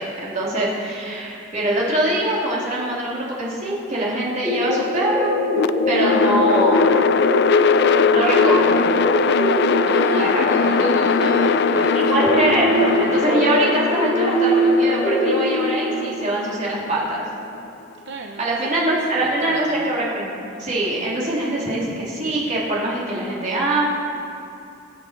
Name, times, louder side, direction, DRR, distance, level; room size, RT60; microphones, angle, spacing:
voice 1, 0.0-5.4 5.9-7.0 8.0-9.0 10.2-10.7 11.9-17.2 18.4-23.8, right 1 dB, 40° right, -6 dB, 3.5 m, -23 dB
sound 1, 4.4-15.7, equal, 10° left, 4.2 m, -22 dB
sound 2, 5.5-17.7, left 5 dB, 60° left, 0.4 m, -21 dB
voice 2, 9.9-12.1 18.1-18.5 19.2-19.9, right 3 dB, 60° right, 3 dB, 0.8 m, -33 dB
24.5 x 8.5 x 4.7 m, 2.6 s
head